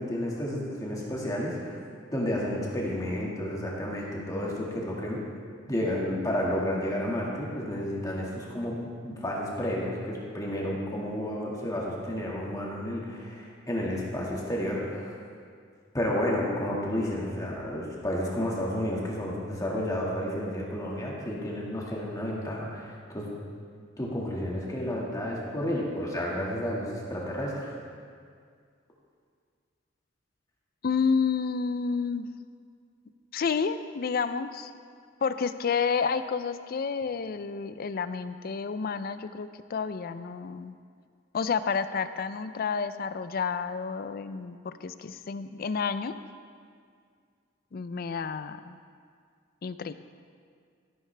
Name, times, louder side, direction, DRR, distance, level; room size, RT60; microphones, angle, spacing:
voice 1, 0.0-1.8 2.1-5.2 5.7-15.2 15.9-23.3 24.0-27.7, left 1 dB, 20° left, -4 dB, 1.8 m, -31 dB
voice 2, 30.8-32.3 33.3-34.7 35.2-40.8 41.3-46.1 47.7-48.8 49.6-49.9, left 5 dB, 50° left, 12 dB, 0.4 m, -30 dB
13.5 x 11.5 x 3.3 m, 2.1 s
head